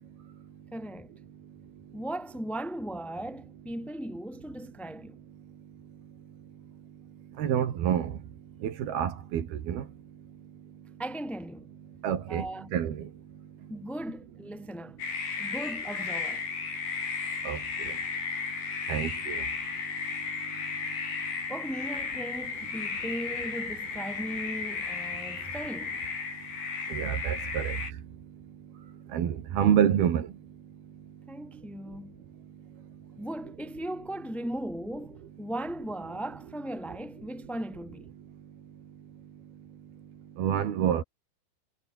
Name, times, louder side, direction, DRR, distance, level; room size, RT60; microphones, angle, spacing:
voice 1, 0.7-1.1 1.9-5.2 11.0-11.7 12.3-12.7 13.7-15.0 15.4-16.4 21.5-26.0 31.3-32.2 33.2-38.1, right 1 dB, ahead, 5.2 m, -37 dB
voice 2, 7.4-8.2 8.6-9.9 12.0-12.5 12.7-13.1 17.4-17.9 18.9-19.4 26.9-27.8 29.1-30.3 40.4-41.0, right 9 dB, 60° right, 3.9 m, -27 dB
sound 1, 15.0-27.9, left 5 dB, 65° left, 8.6 m, -34 dB
omnidirectional pair, 5.4 m